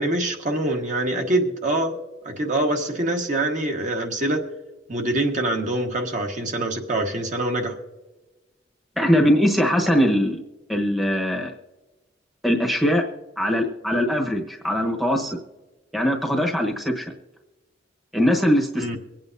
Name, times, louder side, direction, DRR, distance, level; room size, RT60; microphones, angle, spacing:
voice 1, 0.0-1.9 2.2-4.4 4.9-7.8 18.8-19.0, right 1 dB, 45° right, 2 dB, 1.4 m, -24 dB
voice 2, 9.0-10.4 10.7-11.5 12.4-13.0 13.4-15.4 15.9-17.1 18.1-19.0, equal, ahead, 1 dB, 1.1 m, -21 dB
24.5 x 8.7 x 2.6 m, 1.1 s
head